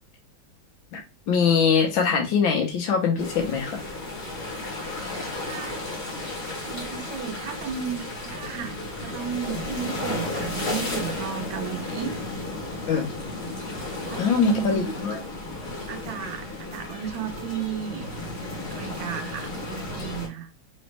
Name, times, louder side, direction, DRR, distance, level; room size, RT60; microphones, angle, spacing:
voice 1, 1.3-3.8 12.9-13.1 14.2-15.2, left 6 dB, 75° left, 1.8 m, -22 dB
sound 1, 3.2-20.3, left 2 dB, 35° left, 1.4 m, -34 dB
voice 2, 5.4-5.8 6.6-12.1 12.8-13.0 13.9-15.0 15.9-18.1 18.7-20.5, right 9 dB, 80° right, 1.5 m, -34 dB
4.1 x 3.2 x 3.3 m
omnidirectional pair, 2.1 m